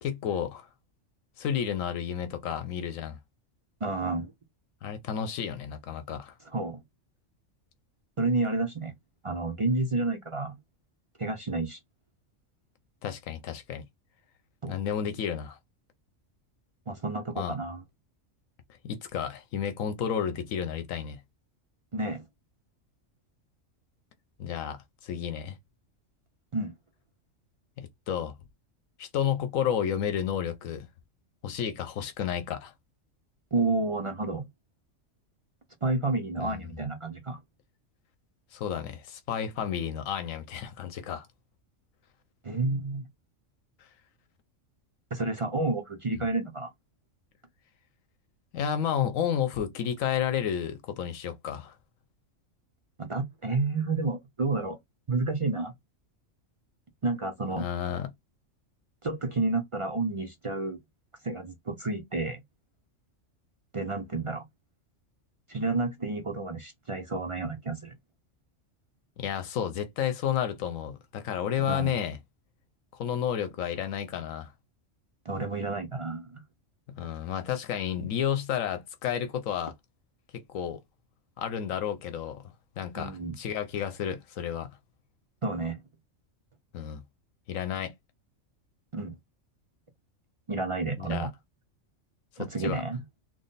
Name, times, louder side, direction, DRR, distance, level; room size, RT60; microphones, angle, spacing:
voice 1, 0.0-0.7 1.4-3.2 4.8-6.3 13.0-13.8 14.7-15.6 17.4-17.5 18.8-21.2 24.4-25.6 27.8-28.3 29.0-30.9 31.4-32.7 36.3-36.7 38.5-41.3 43.8-43.9 46.1-46.2 48.5-51.8 57.6-58.1 69.2-72.2 72.9-74.5 76.9-79.7 80.3-80.8 81.4-84.7 86.7-87.0 87.5-87.9 91.0-91.3 92.4-92.8, left 9 dB, 90° left, 1.1 m, -31 dB
voice 2, 3.8-4.3 6.5-6.8 8.2-8.9 9.2-10.6 11.2-11.8 14.6-14.8 16.9-17.8 21.9-22.2 26.5-26.8 33.5-34.5 35.8-37.4 42.4-43.0 45.1-46.7 53.0-54.8 55.1-55.7 57.0-57.6 59.0-60.8 61.2-62.4 63.7-64.4 65.5-67.9 71.6-71.9 75.2-76.4 83.0-83.4 85.4-85.8 88.9-89.1 90.5-91.3 92.4-93.0, right 3 dB, 45° right, 0.4 m, -30 dB
3.7 x 2.0 x 3.9 m
omnidirectional pair, 1.3 m